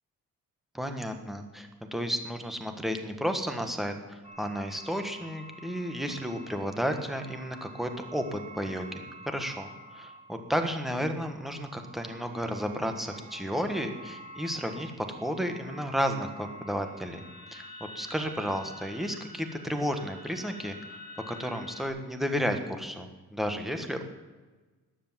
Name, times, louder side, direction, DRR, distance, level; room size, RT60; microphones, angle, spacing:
voice 1, 0.7-17.2 17.5-20.8 21.3-24.0, equal, ahead, 6 dB, 1.3 m, -32 dB
sound 1, 4.2-21.9, equal, 20° right, 3.7 m, -48 dB
13.0 x 10.5 x 7.4 m, 1.3 s
cardioid pair, 155°, 33 cm